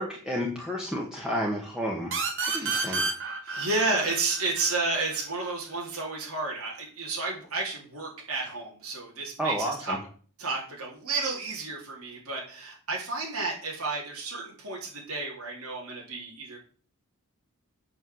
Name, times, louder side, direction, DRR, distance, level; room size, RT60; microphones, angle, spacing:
voice 1, 0.0-2.2 2.5-3.0 9.4-10.0, equal, 5° right, -2 dB, 1.8 m, -31 dB
sound 1, 2.1-5.5, right 4 dB, 60° right, 2.9 m, -31 dB
voice 2, 2.4-3.1 3.4-10.0 10.4-16.6, right 3 dB, 80° right, -3 dB, 3.8 m, -32 dB
8.9 x 6.0 x 7.8 m, 0.43 s
head